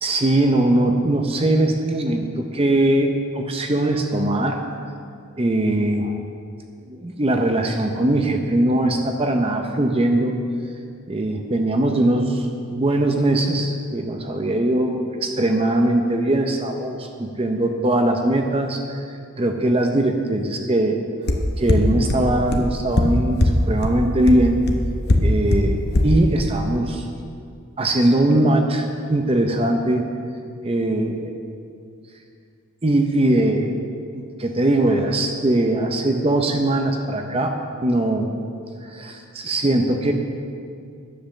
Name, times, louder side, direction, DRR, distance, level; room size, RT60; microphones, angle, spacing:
voice 1, 0.0-4.6 5.4-6.2 6.9-10.3 11.1-19.0 19.4-21.0 21.6-23.4 23.7-24.6 25.2-27.1 27.8-30.1 30.6-31.3 32.8-33.8 34.1-37.5 37.8-38.3 38.8-40.1, right 1 dB, 25° right, 4 dB, 0.6 m, -21 dB
sound 1, 21.3-21.4 21.7-21.8 22.1-22.2 22.5-22.6 23.0-23.1 23.4-23.5 23.8-23.9 24.3-24.4 24.7-24.8 25.1-25.2 25.5-25.6 25.9-26.0, left 2 dB, 45° left, 0.9 m, -17 dB
10.0 x 8.0 x 6.4 m, 2.3 s
head